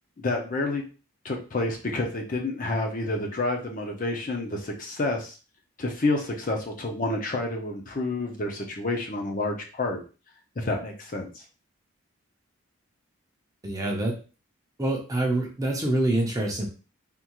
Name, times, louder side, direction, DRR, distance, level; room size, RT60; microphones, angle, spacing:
voice 1, 0.2-0.8 1.2-5.4 5.8-10.0 10.6-11.4, left 2 dB, 35° left, 1 dB, 0.6 m, -29 dB
voice 2, 13.6-14.1 14.8-16.7, right 1 dB, 15° right, -1 dB, 0.6 m, -26 dB
3.6 x 2.4 x 2.9 m, 0.34 s
head